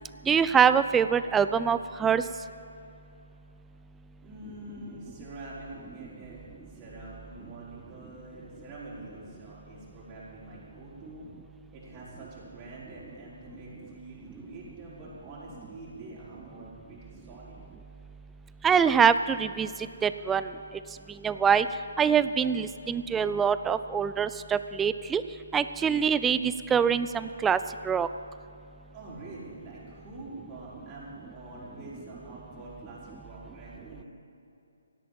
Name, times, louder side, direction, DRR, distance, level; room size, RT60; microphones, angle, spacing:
voice 1, 0.3-2.2 18.6-19.7 20.0-20.5 21.2-21.7 22.0-25.2 25.5-27.6 27.9-28.1, right 7 dB, 10° right, 13 dB, 0.4 m, -24 dB
voice 2, 4.2-6.4 6.7-11.3 11.7-17.6 28.9-34.1, right 2 dB, 30° right, -8 dB, 4.9 m, -45 dB
17.0 x 8.4 x 8.7 m, 2.7 s
figure-of-eight pair, 135°, 0 cm